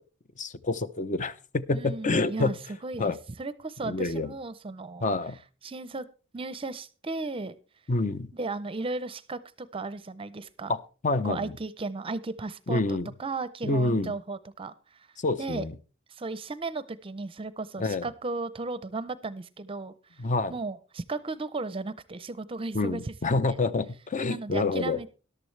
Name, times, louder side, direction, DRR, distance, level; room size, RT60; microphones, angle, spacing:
voice 1, 0.4-2.5 3.0-3.2 3.8-4.3 5.0-5.4 7.9-8.3 10.7-10.8 11.0-11.5 12.7-13.1 13.6-14.1 15.2-15.7 17.8-18.1 20.2-20.5 22.7-25.0, left 3 dB, 40° left, 13 dB, 0.6 m, -27 dB
voice 2, 1.7-2.6 2.8-3.1 3.4-5.1 5.6-6.1 6.3-7.5 8.3-10.8 11.2-15.1 15.4-15.7 16.1-23.1 23.5-23.6 24.3-25.1, right 3 dB, 30° right, 16 dB, 0.6 m, -35 dB
13.5 x 11.5 x 3.2 m, 0.35 s
head